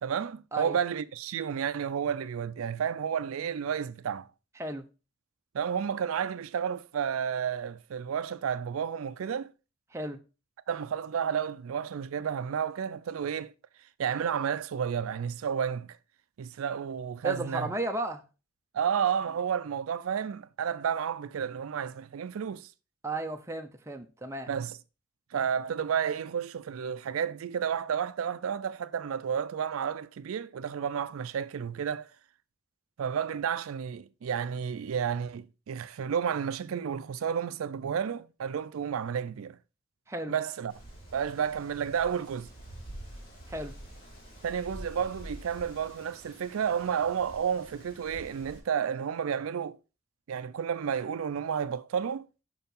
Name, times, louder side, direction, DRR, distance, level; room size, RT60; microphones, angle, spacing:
voice 1, 0.0-4.3 5.5-9.5 10.7-13.5 14.0-16.0 16.4-17.7 18.7-22.7 24.5-24.7 25.3-32.1 33.0-39.6 40.3-40.7 41.1-42.5 44.4-49.8 50.3-52.3, right 7 dB, 90° right, 0.4 m, -31 dB
voice 2, 17.2-18.3 23.0-24.5 40.1-40.3 43.5-43.7, right 2 dB, 15° right, 0.6 m, -34 dB
Wind, 40.7-48.6, right 1 dB, 45° left, 2.4 m, -47 dB
5.6 x 4.5 x 5.2 m
head